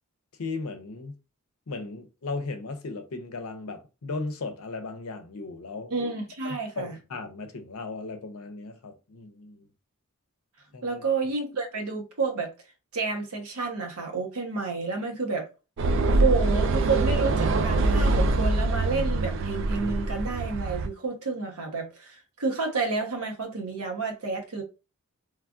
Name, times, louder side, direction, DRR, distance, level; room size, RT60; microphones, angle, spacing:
voice 1, 0.4-1.1 1.7-5.9 6.4-9.7 10.7-11.0, left 3 dB, 75° left, 0.6 m, -36 dB
voice 2, 5.9-6.9 10.8-12.5 12.9-15.5 16.1-24.6, right 4 dB, 85° right, 0.9 m, -30 dB
sound 1, 15.8-20.9, right 2 dB, 55° right, 0.3 m, -24 dB
3.2 x 2.3 x 2.3 m
head